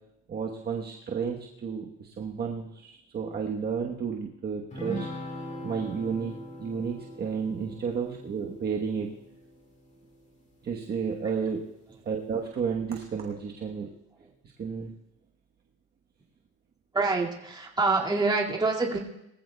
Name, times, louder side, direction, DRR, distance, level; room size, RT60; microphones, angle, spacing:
voice 1, 0.3-5.1 5.6-6.3 6.6-9.1 10.6-11.6 12.0-13.9 14.6-14.9, right 6 dB, 30° right, 0 dB, 1.2 m, -32 dB
sound 1, 4.7-10.4, equal, 25° left, 2.9 m, -41 dB
voice 2, 16.9-19.0, right 3 dB, 15° right, -2 dB, 2.2 m, -26 dB
22.5 x 15.0 x 2.3 m, 0.84 s
cardioid pair, 140°, 30 cm